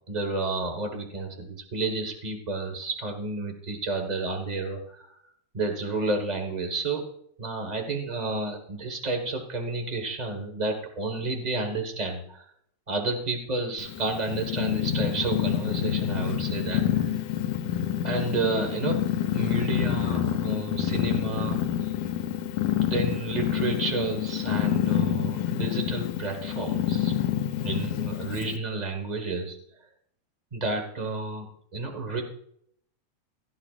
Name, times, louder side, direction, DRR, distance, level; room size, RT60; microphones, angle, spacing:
voice 1, 0.1-5.2 5.5-7.1 7.4-12.4 12.9-17.2 18.0-21.9 22.8-27.1 27.6-29.6 30.5-32.2, right 3 dB, 70° right, 4 dB, 0.4 m, -31 dB
Purr, 13.8-28.6, left 10 dB, 80° left, 2.1 m, -27 dB
17.0 x 12.0 x 2.4 m, 0.69 s
omnidirectional pair, 3.3 m